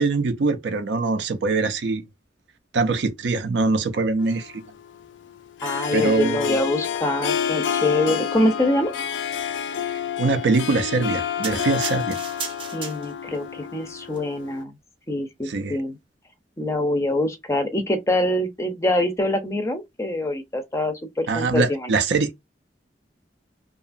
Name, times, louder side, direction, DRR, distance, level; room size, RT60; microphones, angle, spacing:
voice 1, 0.0-2.0 2.7-4.6 5.9-6.6 9.9-12.2 15.5-15.8 21.3-22.3, right 3 dB, 70° right, 0.5 m, -23 dB
Harp, 4.2-14.6, left 8 dB, 90° left, 0.4 m, -29 dB
voice 2, 5.6-8.9 12.7-14.8 15.1-16.0 16.6-21.9, left 1 dB, 15° left, 0.5 m, -24 dB
sound 1, 11.4-13.4 14.0-14.2, right 5 dB, 30° right, 0.6 m, -35 dB
2.7 x 2.3 x 2.5 m
head